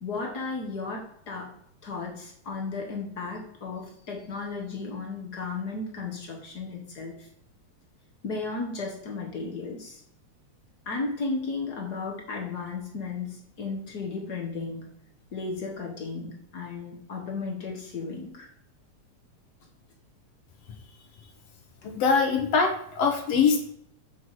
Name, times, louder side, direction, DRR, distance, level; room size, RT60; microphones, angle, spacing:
voice 1, 0.0-1.5 1.8-7.3 8.2-10.0 10.8-14.9 15.3-18.5, left 4 dB, 45° left, 1 dB, 1.3 m, -34 dB
voice 2, 21.8-23.7, left 5 dB, 65° left, 4 dB, 2.2 m, -23 dB
7.8 x 5.9 x 4.8 m, 0.68 s
omnidirectional pair, 3.4 m